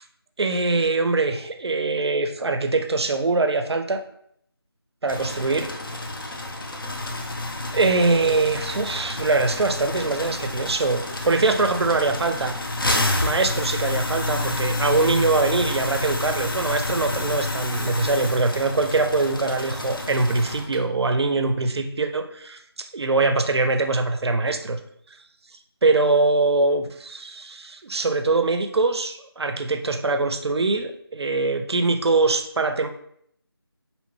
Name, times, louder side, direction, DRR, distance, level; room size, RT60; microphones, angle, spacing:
voice 1, 0.4-4.0 5.0-5.7 7.7-12.5 13.2-24.8 25.8-32.9, right 3 dB, 85° right, 7 dB, 0.4 m, -23 dB
sound 1, 5.1-20.8, left 2 dB, 60° left, 0.5 m, -29 dB
2.7 x 2.1 x 3.1 m, 0.69 s
figure-of-eight pair, 170°, 13 cm